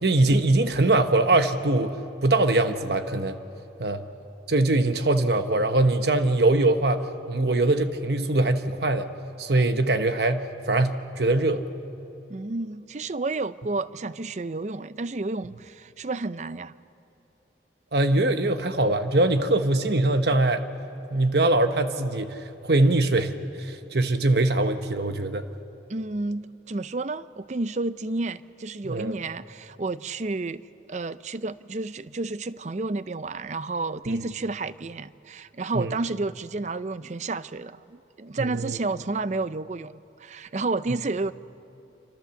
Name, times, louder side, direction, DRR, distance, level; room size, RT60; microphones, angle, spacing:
voice 1, 0.0-3.4 3.8-4.0 4.5-9.1 9.4-11.6 17.9-20.7 21.1-25.4 28.8-29.1 34.1-34.2 35.7-35.9 38.4-38.8, right 2 dB, 65° right, 8 dB, 1.0 m, -22 dB
voice 2, 12.3-16.7 25.9-41.3, right 3 dB, 40° right, 15 dB, 0.5 m, -31 dB
27.5 x 26.0 x 7.0 m, 2.8 s
head